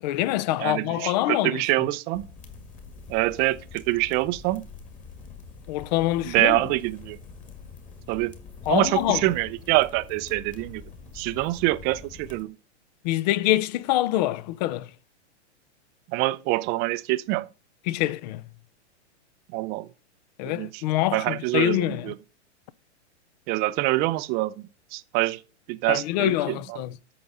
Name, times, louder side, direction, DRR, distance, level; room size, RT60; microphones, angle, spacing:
voice 1, 0.0-1.6 5.7-6.6 8.7-9.2 13.0-14.9 17.9-18.4 20.4-22.1 25.9-27.0, left 15 dB, 40° left, 0.5 m, -25 dB
voice 2, 0.6-2.3 3.1-4.6 6.2-7.2 8.1-8.3 8.7-10.8 11.1-12.5 16.1-17.5 19.5-19.9 20.4-20.8 21.1-22.1 23.5-25.4 25.7-26.8, right 19 dB, 25° right, 0.5 m, -25 dB
sound 1, 2.1-12.4, left 5 dB, 20° left, 2.0 m, -45 dB
8.6 x 6.1 x 5.4 m
hypercardioid pair, 135°, 35 cm